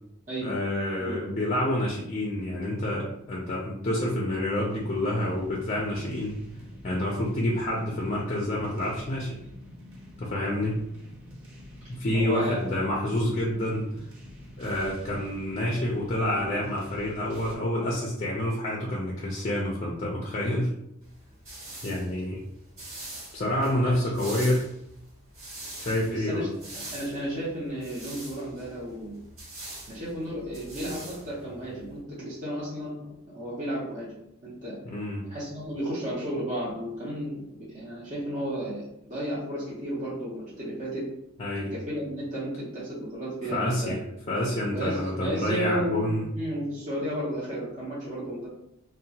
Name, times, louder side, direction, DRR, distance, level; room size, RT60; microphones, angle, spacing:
voice 1, 0.4-6.4 6.8-9.4 10.2-10.8 11.9-13.9 14.6-20.7 21.8-22.4 23.3-24.6 25.8-26.5 34.9-35.2 41.4-41.7 43.5-44.0 44.3-46.3, left 1 dB, 35° left, -3 dB, 0.4 m, -28 dB
sound 1, 4.7-17.6, left 1 dB, 90° right, 0.7 m, -46 dB
voice 2, 11.8-12.7 23.8-24.0 26.1-26.5 26.7-29.2 29.9-33.0 33.3-34.1 34.4-34.8 35.3-41.1 41.7-44.0 44.7-48.5, equal, 35° right, -8 dB, 0.6 m, -33 dB
sound 2, 21.0-32.0, right 1 dB, 65° right, 1.2 m, -44 dB
2.7 x 2.1 x 2.7 m, 0.79 s
head